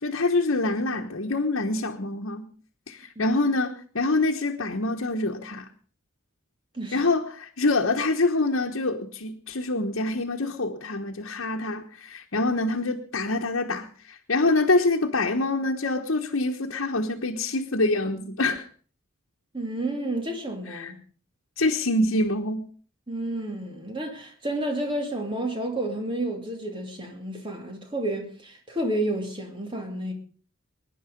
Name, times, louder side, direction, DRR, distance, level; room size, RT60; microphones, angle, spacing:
voice 1, 0.0-2.5 2.9-5.7 6.9-18.7 20.7-20.9 21.6-22.7, left 2 dB, 70° left, 1.2 m, -25 dB
voice 2, 6.7-7.1 19.5-21.0 23.1-30.1, right 1 dB, 25° right, 2.9 m, -30 dB
22.0 x 10.5 x 5.3 m
head